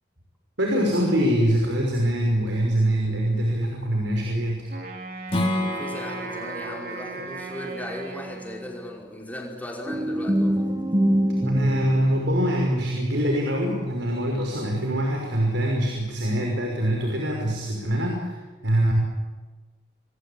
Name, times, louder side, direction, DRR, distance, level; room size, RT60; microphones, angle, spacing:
voice 1, 0.6-4.7 11.4-18.3 18.6-18.9, equal, 75° right, 0 dB, 6.0 m, -24 dB
Wind instrument woodwind instrument, 4.7-9.1, right 3 dB, 50° right, 3.6 m, -37 dB
Strum, 5.3-10.5, left 1 dB, 30° left, 4.0 m, -33 dB
voice 2, 5.6-10.7, equal, 10° left, -1 dB, 5.2 m, -37 dB
sound 1, 9.9-15.7, right 1 dB, 15° right, 1.2 m, -26 dB
29.5 x 22.0 x 8.8 m, 1.3 s
head